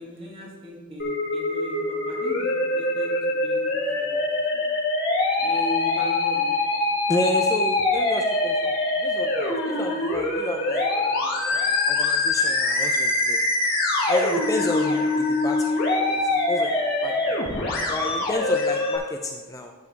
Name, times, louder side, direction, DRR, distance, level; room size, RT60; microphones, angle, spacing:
voice 1, 0.0-3.1 3.4-4.2 4.5-4.6 5.4-6.5 17.1-17.2, equal, 25° right, -3 dB, 1.4 m, -37 dB
Musical instrument, 1.0-19.0, left 2 dB, 45° left, 1.8 m, -24 dB
voice 2, 7.1-8.8 9.0-13.4 14.1-16.8 17.0-17.4 17.9-19.7, left 1 dB, 15° left, 3 dB, 0.4 m, -30 dB
11.0 x 4.7 x 4.6 m, 1.4 s
head